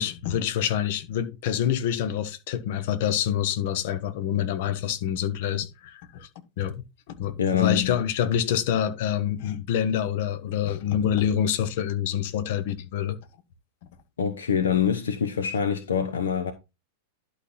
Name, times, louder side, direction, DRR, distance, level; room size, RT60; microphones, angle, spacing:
voice 1, 0.0-6.3 6.6-13.2, left 9 dB, 55° left, 1.1 m, -26 dB
voice 2, 7.4-8.0 14.2-16.5, left 8 dB, 70° left, 0.9 m, -25 dB
11.5 x 4.3 x 3.9 m
figure-of-eight pair, 90°, 0 cm